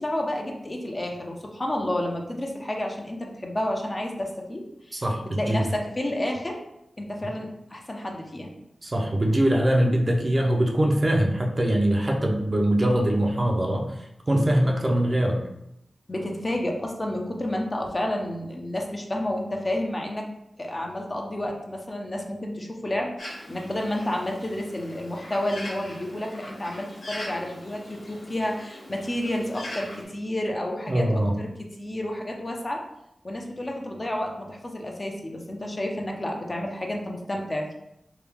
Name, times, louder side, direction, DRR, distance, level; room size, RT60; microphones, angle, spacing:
voice 1, 0.0-5.0 5.4-6.6 7.0-8.5 16.1-20.3 20.6-31.5 31.8-32.8 33.2-37.8, left 1 dB, 35° left, 0 dB, 0.6 m, -30 dB
voice 2, 4.9-5.6 8.8-15.4 30.9-31.4, right 1 dB, 30° right, 0 dB, 0.5 m, -23 dB
Bird, 23.2-30.0, left 1 dB, 90° left, 1.1 m, -41 dB
3.4 x 2.3 x 3.4 m, 0.82 s
wide cardioid pair, 65°, 0 cm